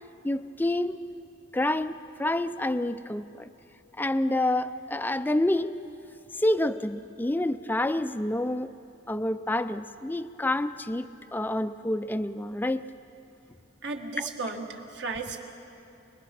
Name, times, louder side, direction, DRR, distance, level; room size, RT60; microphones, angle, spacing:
voice 1, 0.2-1.0 1.5-3.5 4.0-5.8 6.3-8.7 9.1-12.9 14.2-14.3, left 1 dB, 10° left, 11 dB, 0.4 m, -28 dB
voice 2, 13.8-15.4, right 3 dB, 60° right, 3 dB, 1.7 m, -34 dB
26.0 x 20.5 x 6.0 m, 2.7 s
head